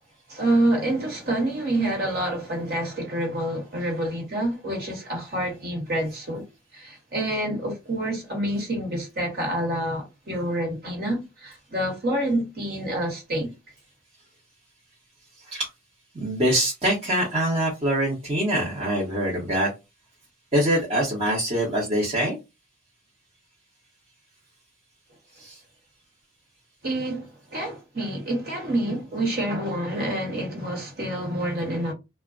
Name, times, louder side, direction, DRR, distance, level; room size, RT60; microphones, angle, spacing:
voice 1, 0.3-6.4 6.7-13.5 26.8-31.9, right 1 dB, 50° right, 1.2 m, -27 dB
voice 2, 15.4-15.7 16.1-19.7 20.5-22.4 25.4-25.6, right 1 dB, 30° right, 0.9 m, -24 dB
2.2 x 2.1 x 3.6 m
head